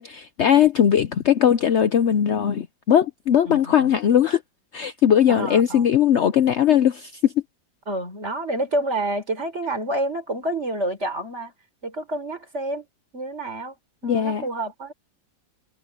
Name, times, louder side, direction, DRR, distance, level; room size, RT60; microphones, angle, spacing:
voice 1, 0.0-4.4 4.7-7.3 14.0-14.5, left 9 dB, 85° left, 0.6 m, -19 dB
voice 2, 3.4-3.9 5.3-6.0 7.9-11.5 11.8-12.9 13.1-13.7 14.0-14.9, right 1 dB, 35° right, 4.7 m, -28 dB
omnidirectional pair, 2.0 m